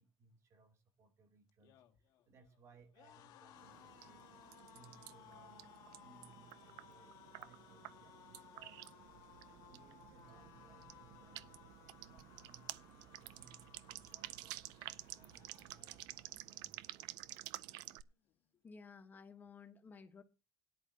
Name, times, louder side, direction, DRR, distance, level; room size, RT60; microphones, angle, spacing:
voice 1, 0.0-4.4 4.7-5.7 6.0-9.0 9.5-11.6 12.0-17.1, right 4 dB, 45° right, 2.6 m, -66 dB
sound 1, 1.5-16.7 17.0-17.3 17.5-18.3, left 11 dB, 70° left, 1.6 m, -62 dB
sound 2, 3.6-18.0, right 17 dB, 90° right, 0.5 m, -52 dB
Cutlery silverware, 9.0-16.7, right 8 dB, 65° right, 1.4 m, -66 dB
voice 2, 18.6-20.2, left 5 dB, 25° left, 1.2 m, -55 dB
17.5 x 10.5 x 2.8 m
cardioid pair, 130°, 7 cm